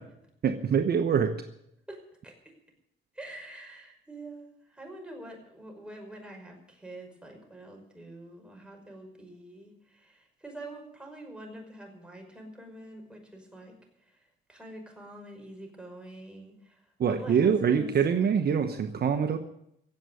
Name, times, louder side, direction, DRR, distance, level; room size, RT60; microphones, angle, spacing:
voice 1, 0.4-1.3 17.0-19.4, right 7 dB, 50° right, 6 dB, 1.1 m, -24 dB
voice 2, 1.9-2.3 3.1-13.7 14.1-16.8 17.1-17.9, right 1 dB, 5° right, 1 dB, 5.6 m, -45 dB
17.0 x 7.8 x 9.4 m, 0.78 s
cardioid pair, 90°, 20 cm